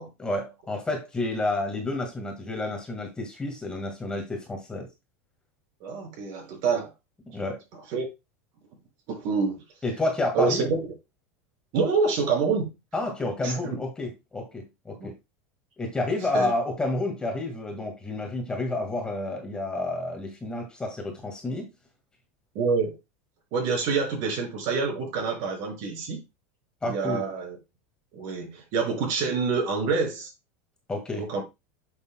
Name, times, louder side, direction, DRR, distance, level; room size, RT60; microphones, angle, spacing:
voice 1, 0.2-4.9 7.3-7.6 9.8-10.7 12.9-15.1 15.8-21.7 26.8-27.2 30.9-31.2, left 2 dB, 10° left, 1.8 m, -30 dB
voice 2, 5.8-6.9 7.9-8.1 9.1-9.6 10.3-10.8 11.7-12.8 13.4-13.8 15.0-15.1 16.3-16.5 22.5-22.9 23.5-26.2 26.9-27.6 28.1-30.3 31.2-31.4, right 5 dB, 55° right, 5.5 m, -27 dB
9.6 x 6.7 x 2.2 m
supercardioid pair, 145°, 8 cm